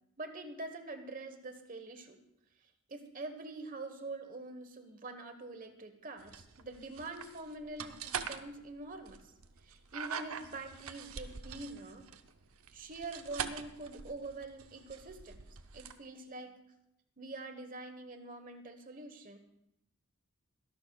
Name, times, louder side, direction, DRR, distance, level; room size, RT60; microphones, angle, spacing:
voice 1, 0.2-2.2 2.9-9.2 9.6-12.1 12.7-15.5 15.7-16.5 17.2-19.4, right 2 dB, 40° right, 7 dB, 1.2 m, -45 dB
sound 1, 6.2-15.9, right 7 dB, 75° right, 0.7 m, -44 dB
23.0 x 11.5 x 2.3 m, 0.83 s
head